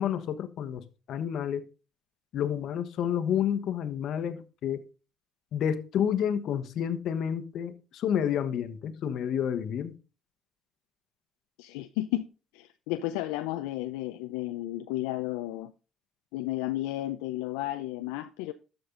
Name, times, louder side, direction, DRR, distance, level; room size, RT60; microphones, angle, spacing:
voice 1, 0.0-1.6 2.3-4.8 5.5-9.9, left 9 dB, 65° left, 1.1 m, -30 dB
voice 2, 11.6-12.2 12.5-15.7 16.3-18.5, left 15 dB, 85° left, 0.5 m, -33 dB
13.0 x 5.3 x 3.8 m
supercardioid pair, 80°, 0 cm